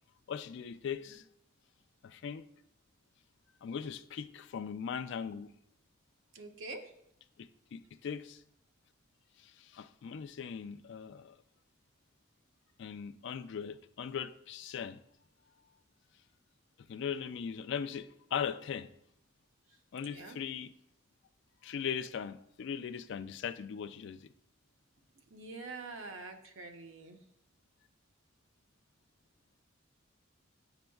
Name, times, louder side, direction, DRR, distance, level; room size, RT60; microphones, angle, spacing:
voice 1, 0.3-1.2 2.0-2.4 3.6-5.5 7.4-8.4 9.4-11.4 12.8-15.0 16.9-18.9 19.9-20.7 21.6-24.3, left 7 dB, 60° left, 0.3 m, -39 dB
voice 2, 6.3-6.9 19.7-19.8 20.0-20.4 25.3-27.2, right 3 dB, 70° right, 0.7 m, -45 dB
8.8 x 5.2 x 2.3 m
head